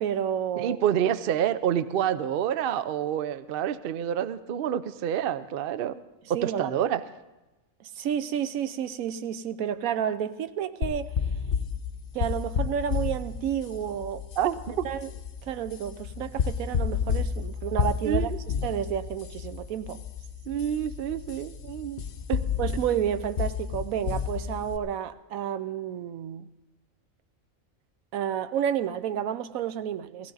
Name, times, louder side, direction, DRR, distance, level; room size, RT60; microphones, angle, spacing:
voice 1, 0.0-0.8 6.3-6.7 8.0-11.1 12.1-14.2 14.8-15.1 15.5-18.3 18.6-20.0 22.6-26.5 28.1-30.3, right 9 dB, 85° right, 1.1 m, -30 dB
voice 2, 0.6-5.9 6.3-7.0 14.4-14.9 18.0-18.4 20.5-22.0 22.3-22.4, right 10 dB, 60° right, 0.6 m, -28 dB
sound 1, 10.8-24.8, left 7 dB, 50° left, 0.8 m, -31 dB
17.0 x 15.5 x 4.0 m
omnidirectional pair, 1.4 m